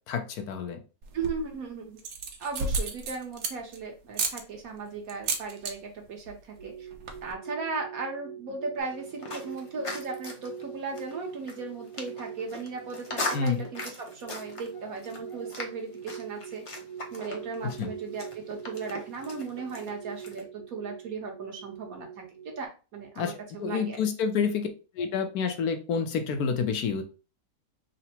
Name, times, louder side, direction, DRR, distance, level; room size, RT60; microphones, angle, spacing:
voice 1, 0.1-0.8 13.3-13.6 17.6-17.9 23.2-24.7 24.9-27.0, left 6 dB, 75° left, 7 dB, 1.1 m, -29 dB
sound 1, 1.0-1.5 2.0-3.8 4.1-4.4 5.1-5.7 6.0-6.3 6.6-6.7 6.9-7.3, right 4 dB, 85° right, 1.3 m, -32 dB
voice 2, 1.1-2.0 2.4-6.9 7.2-16.6 17.1-24.0, right 4 dB, 65° right, 1 dB, 1.4 m, -37 dB
sound 2, 6.6-22.7, right 8 dB, 45° right, 0.3 m, -44 dB
sound 3, 8.8-20.4, left 2 dB, 40° left, 0.4 m, -40 dB
3.8 x 2.1 x 4.2 m, 0.33 s
omnidirectional pair, 1.7 m